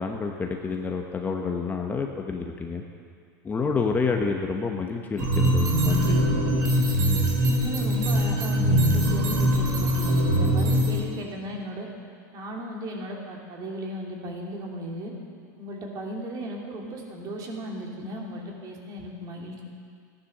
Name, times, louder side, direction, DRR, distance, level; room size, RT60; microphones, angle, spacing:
voice 1, 0.0-2.8 3.4-6.2, left 4 dB, 15° left, 2 dB, 1.0 m, -28 dB
sound 1, 5.2-11.0, equal, 75° right, 3.1 m, -22 dB
voice 2, 7.5-11.9 12.3-15.1 15.6-19.6, equal, 35° right, -1 dB, 2.8 m, -35 dB
14.5 x 10.0 x 6.7 m, 2.3 s
supercardioid pair, 130°, 10 cm